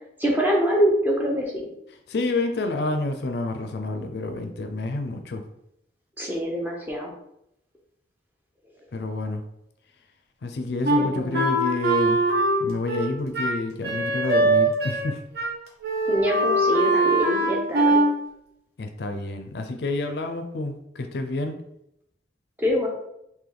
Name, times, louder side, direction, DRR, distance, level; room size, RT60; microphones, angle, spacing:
voice 1, 0.2-1.7 6.2-7.1 11.0-11.4 16.1-18.0 22.6-22.9, equal, 10° right, -2 dB, 0.7 m, -24 dB
voice 2, 2.1-5.4 8.9-9.4 10.4-12.2 12.6-15.2 18.8-21.6, left 2 dB, 65° left, 6 dB, 0.4 m, -28 dB
Wind instrument woodwind instrument, 10.8-15.1 15.4-15.6 15.8-18.1, right 1 dB, 60° right, 0.8 m, -22 dB
3.4 x 2.6 x 3.8 m, 0.79 s
head